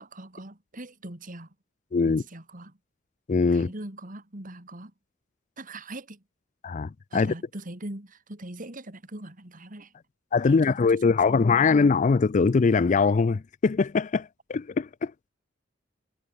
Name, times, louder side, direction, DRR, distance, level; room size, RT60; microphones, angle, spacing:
voice 1, 0.0-1.5 2.0-2.8 3.5-4.9 5.6-6.2 7.1-9.9 10.4-11.7, right 1 dB, 45° right, 3.2 m, -41 dB
voice 2, 1.9-2.2 3.3-3.7 6.6-7.3 10.3-15.1, left 4 dB, 40° left, 0.4 m, -22 dB
head